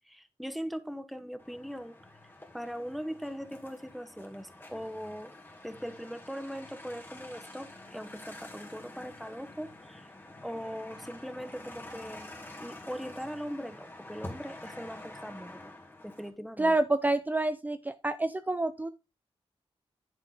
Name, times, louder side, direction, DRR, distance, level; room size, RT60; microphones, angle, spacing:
voice 1, 0.1-2.0 2.5-5.3 5.6-10.1 10.4-12.3 12.6-15.7 16.0-16.8, equal, ahead, 1.0 m, -40 dB
sound 1, 1.4-16.3, left 2 dB, 20° left, 2.4 m, -48 dB
voice 2, 16.6-18.9, right 2 dB, 15° right, 0.5 m, -28 dB
10.5 x 6.0 x 3.9 m
wide cardioid pair, 135°, 10 cm